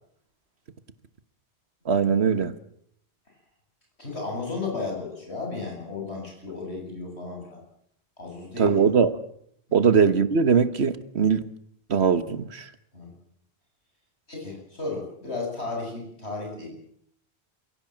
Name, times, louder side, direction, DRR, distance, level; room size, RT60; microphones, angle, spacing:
voice 1, 1.9-2.5 8.6-9.1 9.7-11.4 11.9-12.7, right 6 dB, 80° right, 1.6 m, -21 dB
voice 2, 4.0-7.6 8.2-8.9 9.7-9.8 12.9-13.1 14.3-16.7, left 3 dB, 90° left, 8.3 m, -34 dB
28.0 x 16.5 x 7.5 m
omnidirectional pair, 1.1 m